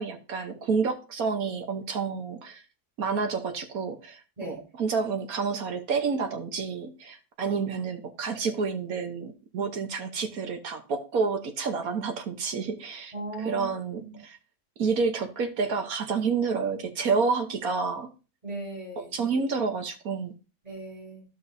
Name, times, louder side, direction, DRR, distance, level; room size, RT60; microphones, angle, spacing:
voice 1, 0.0-2.6 3.0-13.1 13.4-14.4 14.8-18.1 19.0-20.3, right 5 dB, 65° right, 1.4 m, -29 dB
voice 2, 13.1-13.7 14.0-14.2 18.4-19.1 20.6-21.2, right 2 dB, 20° right, 4.3 m, -38 dB
14.0 x 5.4 x 2.7 m
omnidirectional pair, 1.7 m